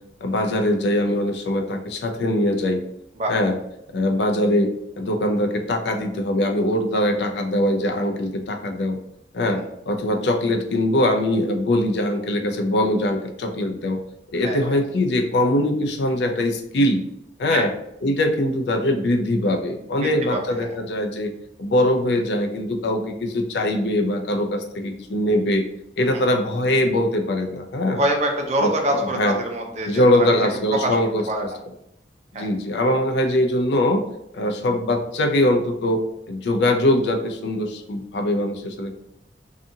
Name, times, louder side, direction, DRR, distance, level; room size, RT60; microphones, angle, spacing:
voice 1, 0.2-2.8 3.3-3.5 3.9-9.0 9.3-14.0 14.3-17.0 17.4-17.7 18.0-21.3 21.6-25.6 26.0-28.0 28.6-29.4 29.9-31.2 32.3-34.0 34.3-36.0 36.3-39.0, left 1 dB, 80° left, 5 dB, 0.4 m, -22 dB
voice 2, 14.4-14.8 17.5-17.7 20.0-20.8 26.1-26.2 27.9-30.4 30.7-31.0 31.3-31.4 32.3-32.5, right 1 dB, 40° right, 2 dB, 0.4 m, -25 dB
2.6 x 2.4 x 2.6 m, 0.79 s
head